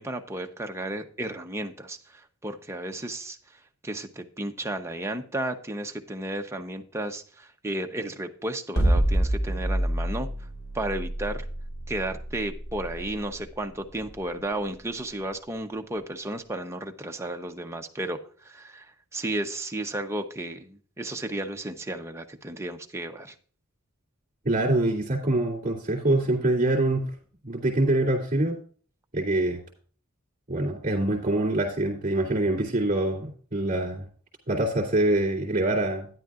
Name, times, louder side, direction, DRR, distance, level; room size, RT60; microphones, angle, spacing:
voice 1, 0.0-3.4 3.8-10.3 10.7-11.4 11.9-23.3, right 1 dB, 15° right, 4 dB, 0.9 m, -33 dB
sound 1, 8.8-14.9, right 1 dB, 85° left, 2.3 m, -27 dB
voice 2, 24.4-27.1 27.4-28.6 29.1-29.6 30.5-34.0 34.5-36.1, right 1 dB, 40° right, -5 dB, 2.8 m, -25 dB
12.0 x 10.5 x 2.5 m, 0.44 s
head